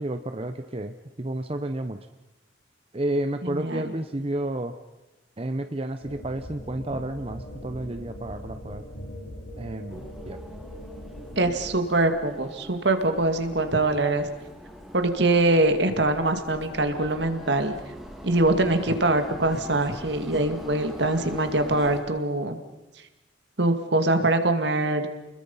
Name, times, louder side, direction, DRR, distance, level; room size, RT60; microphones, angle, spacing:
voice 1, 0.0-2.0 2.9-4.7 5.4-8.8 9.6-10.4, right 1 dB, 30° right, 8 dB, 0.8 m, -31 dB
voice 2, 3.4-3.9 11.4-14.3 14.9-17.7 18.2-22.6 23.6-25.1, right 2 dB, 65° right, 7 dB, 2.0 m, -23 dB
sound 1, 6.0-11.8, left 1 dB, 75° left, 4.2 m, -41 dB
sound 2, 9.9-22.0, equal, ahead, 2.5 m, -43 dB
30.0 x 21.0 x 5.6 m, 1.0 s
head